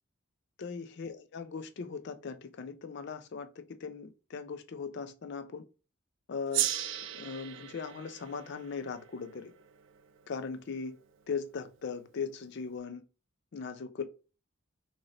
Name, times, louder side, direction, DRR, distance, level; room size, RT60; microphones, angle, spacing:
voice 1, 0.6-5.6 6.3-6.7 7.1-9.5 10.3-11.0 11.3-13.0 13.5-14.0, left 5 dB, 55° left, 0.4 m, -39 dB
Gong, 6.5-11.3, right 11 dB, 65° right, 0.4 m, -37 dB
3.7 x 2.6 x 3.1 m
head